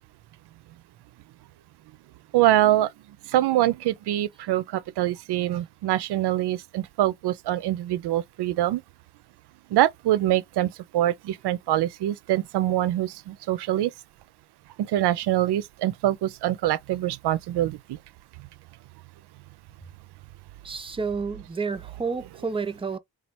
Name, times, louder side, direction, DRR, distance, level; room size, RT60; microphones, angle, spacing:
voice 1, 2.3-2.9 3.2-8.8 9.7-13.9 14.8-18.0 18.4-18.5, right 13 dB, 65° right, 0.5 m, -24 dB
voice 2, 20.6-23.0, right 4 dB, 15° right, 0.4 m, -30 dB
2.9 x 2.4 x 2.9 m
supercardioid pair, 45°, 42 cm